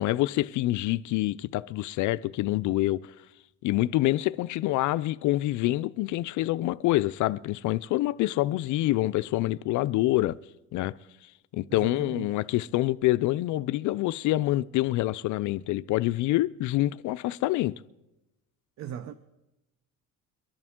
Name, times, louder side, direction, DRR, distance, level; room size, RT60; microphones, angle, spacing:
voice 1, 0.0-3.1 3.6-10.4 10.7-10.9 11.5-17.8, left 16 dB, 65° left, 0.4 m, -26 dB
voice 2, 11.7-12.3 18.8-19.1, right 9 dB, 55° right, 0.7 m, -38 dB
23.5 x 11.0 x 3.6 m
cardioid pair, 130°, 32 cm